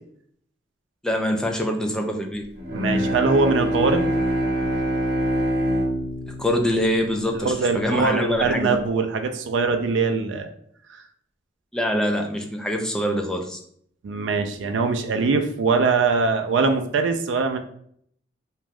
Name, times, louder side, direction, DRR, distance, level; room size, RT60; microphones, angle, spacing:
voice 1, 1.0-2.5 6.4-8.7 11.7-13.6, equal, 5° left, 2 dB, 0.3 m, -24 dB
Bowed string instrument, 2.6-7.9, equal, 50° right, 1.0 m, -25 dB
voice 2, 2.7-4.1 7.3-10.5 14.0-17.6, right 4 dB, 70° right, 7 dB, 0.3 m, -22 dB
2.5 x 2.2 x 3.2 m, 0.65 s
head